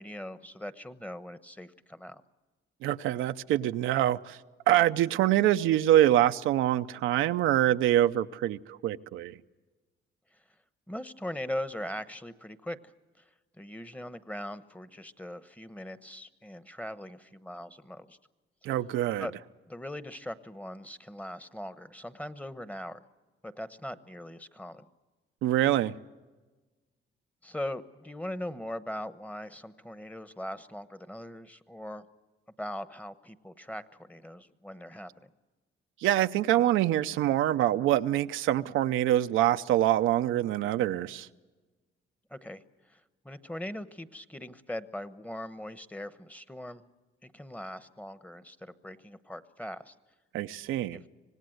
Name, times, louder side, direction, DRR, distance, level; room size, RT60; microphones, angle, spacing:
voice 1, 0.0-2.2 10.3-10.4 10.9-12.8 13.2-13.3 13.6-18.2 19.2-19.3 19.7-23.0 23.4-24.9 27.4-32.0 32.6-35.3 42.3-46.8 47.2-49.9 50.9-51.0, left 1 dB, 5° left, 1.0 m, -40 dB
voice 2, 2.8-4.4 4.7-9.4 18.6-19.3 25.4-25.9 36.0-41.3 50.3-51.0, right 13 dB, 90° right, 0.6 m, -25 dB
25.5 x 18.5 x 7.9 m
cardioid pair, 90°, 20 cm